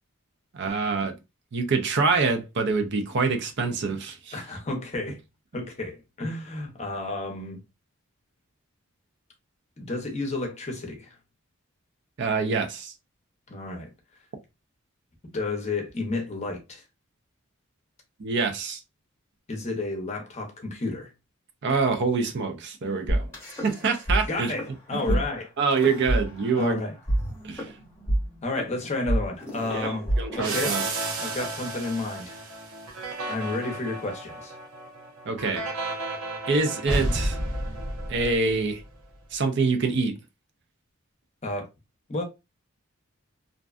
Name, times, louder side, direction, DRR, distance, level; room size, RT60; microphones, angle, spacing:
voice 1, 0.5-1.1 1.5-4.4 12.2-12.9 18.2-18.8 21.6-23.3 23.6-24.5 24.9-25.2 25.6-26.8 27.4-27.7 29.7-30.8 35.3-35.7 36.5-37.4 38.1-38.8 39.3-40.2, right 4 dB, 55° right, 0.5 m, -25 dB
voice 2, 4.3-5.2 5.5-7.6 9.8-11.2 13.5-13.9 15.3-16.8 19.5-21.1 24.3-25.5 26.6-26.9 28.4-30.1 30.3-30.8 31.2-32.5 33.3-34.5 41.4-41.7 42.1-42.2, left 2 dB, 30° left, 0.7 m, -31 dB
sound 1, 23.1-24.2 24.5-24.7 25.1-25.2 25.7-26.7 27.1-31.1, right 1 dB, 10° left, 0.9 m, -27 dB
sound 2, 30.4-38.8, right 2 dB, 90° right, 0.8 m, -32 dB
2.6 x 2.2 x 2.3 m
head